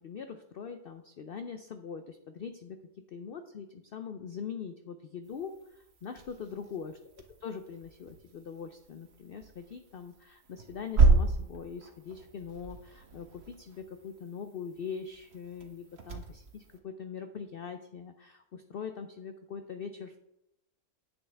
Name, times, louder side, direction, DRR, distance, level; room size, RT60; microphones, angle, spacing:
voice 1, 0.0-2.8 3.1-7.0 7.4-20.2, left 6 dB, 65° left, 8 dB, 0.6 m, -42 dB
sound 1, 5.2-16.8, right 3 dB, 50° right, 1.1 m, -32 dB
9.7 x 7.9 x 3.4 m, 0.88 s
omnidirectional pair, 1.5 m